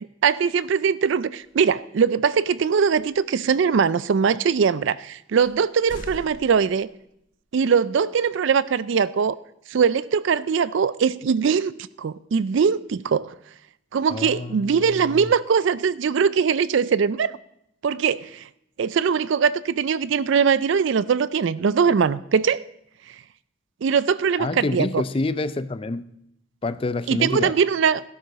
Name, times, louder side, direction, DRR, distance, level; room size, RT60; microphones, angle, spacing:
voice 1, 0.2-6.9 7.5-9.4 9.7-11.7 12.0-13.3 13.9-17.3 17.8-18.5 18.8-22.6 23.8-25.0 27.1-28.0, right 6 dB, 60° right, 0.4 m, -21 dB
sound 1, 1.4-1.7 2.7-3.1 3.8-3.9 4.7-4.8 5.4-7.3, left 1 dB, 40° left, 1.3 m, -43 dB
voice 2, 14.1-15.2 24.4-26.0 26.6-27.5, left 2 dB, 25° left, 0.4 m, -27 dB
17.5 x 11.0 x 4.1 m
head